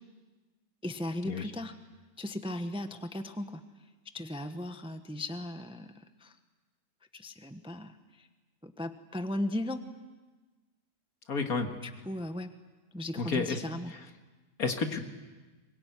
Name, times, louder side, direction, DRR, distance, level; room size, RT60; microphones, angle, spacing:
voice 1, 0.8-1.7 2.2-3.5 4.1-5.9 6.2-6.3 7.1-7.9 8.6-9.8 11.8-12.5 12.9-13.9, left 1 dB, 5° right, 8 dB, 0.9 m, -36 dB
voice 2, 11.3-11.7 13.2-13.6 13.9-14.0 14.6-15.0, left 4 dB, 65° left, 5 dB, 2.2 m, -31 dB
23.5 x 22.0 x 9.4 m, 1.3 s
omnidirectional pair, 1.7 m